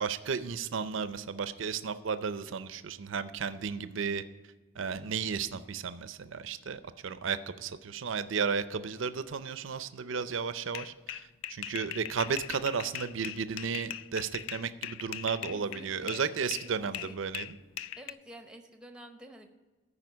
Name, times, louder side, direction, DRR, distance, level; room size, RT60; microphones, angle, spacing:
voice 1, 0.0-4.2 4.8-11.2 11.5-17.6, right 6 dB, 75° right, 13 dB, 0.5 m, -34 dB
sound 1, 10.7-16.3 16.5-18.1, left 12 dB, 80° left, 0.3 m, -40 dB
voice 2, 15.5-17.2 18.0-19.5, right 1 dB, 5° right, 6 dB, 0.7 m, -50 dB
14.0 x 5.0 x 6.1 m, 1.3 s
head